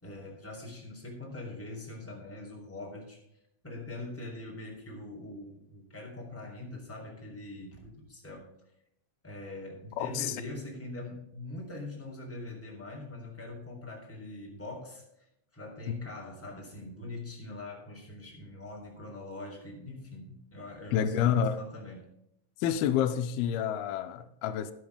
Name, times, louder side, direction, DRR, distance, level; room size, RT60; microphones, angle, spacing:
voice 1, 0.0-3.2 3.6-8.5 9.2-15.0 15.5-22.0, left 2 dB, 5° left, 3.2 m, -43 dB
voice 2, 10.0-10.4 20.9-21.6 22.6-24.7, left 9 dB, 90° left, 2.6 m, -28 dB
12.0 x 11.5 x 3.6 m
omnidirectional pair, 4.4 m